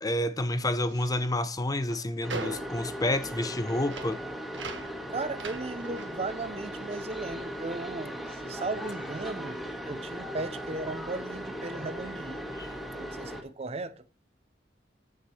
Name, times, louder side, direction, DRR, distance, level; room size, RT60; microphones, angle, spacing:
voice 1, 0.0-4.2 12.6-12.7, left 1 dB, 20° left, 0.6 m, -29 dB
sound 1, 0.7-8.1 8.4-9.9, right 4 dB, 80° right, 1.5 m, -45 dB
sound 2, 2.2-13.4, equal, ahead, 1.4 m, -38 dB
voice 2, 5.1-12.5 12.9-14.0, right 3 dB, 35° right, 0.6 m, -36 dB
7.5 x 7.2 x 4.3 m
head